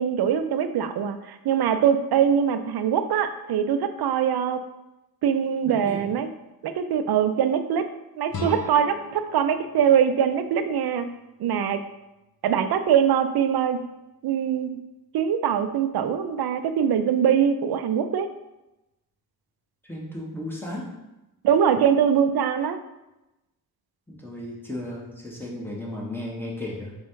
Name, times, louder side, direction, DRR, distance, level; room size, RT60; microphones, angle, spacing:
voice 1, 0.0-4.6 5.2-6.3 6.6-7.8 8.2-11.1 11.4-11.8 12.4-13.8 14.2-14.7 15.1-18.3 21.4-22.8, right 8 dB, 70° right, 10 dB, 0.5 m, -22 dB
voice 2, 5.6-6.0 19.8-20.9 24.1-27.0, left 1 dB, 5° left, -4 dB, 1.3 m, -35 dB
sound 1, 8.3-11.3, left 2 dB, 65° left, 0.8 m, -38 dB
4.2 x 2.3 x 4.6 m, 0.96 s
cardioid pair, 45°, 39 cm